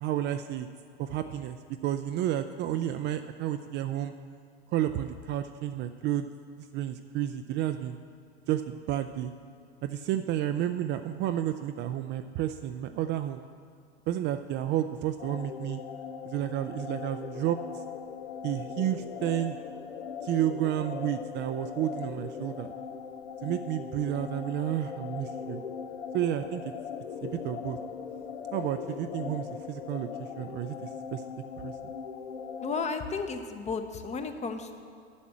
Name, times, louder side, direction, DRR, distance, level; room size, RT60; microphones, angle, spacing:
voice 1, 0.0-0.7 1.0-1.6 1.8-4.1 4.7-6.3 6.6-8.0 8.5-9.3 9.8-13.4 14.1-15.8 16.2-17.8 18.4-19.6 20.2-22.7 23.4-25.6 26.1-26.6 27.2-27.8 28.5-31.2 31.6-31.7, right 12 dB, 35° right, 8 dB, 0.4 m, -31 dB
sound 1, 15.2-32.8, left 6 dB, 85° left, 0.7 m, -39 dB
voice 2, 32.6-34.7, left 4 dB, 20° left, 7 dB, 0.7 m, -33 dB
8.4 x 6.0 x 7.7 m, 2.2 s
hypercardioid pair, 95°, 33 cm